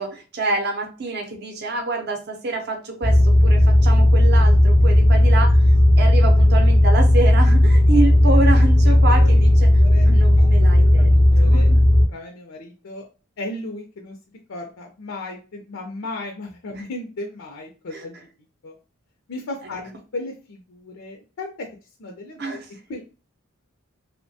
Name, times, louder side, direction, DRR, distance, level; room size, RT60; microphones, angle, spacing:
voice 1, 0.0-5.6 6.0-9.7 10.0-11.1 11.4-11.8 16.7-16.8 17.9-18.0 22.4-22.7, right 3 dB, 55° right, 3 dB, 0.6 m, -26 dB
sound 1, 3.0-12.1, left 1 dB, 25° left, 0.3 m, -14 dB
voice 2, 8.8-9.4 9.8-10.7 11.0-11.7 12.1-13.1 13.4-14.2 14.5-18.2 18.6-18.7 19.3-21.7 22.0-23.0, left 2 dB, 85° left, 1 dB, 0.5 m, -35 dB
2.8 x 2.1 x 2.7 m, 0.34 s
head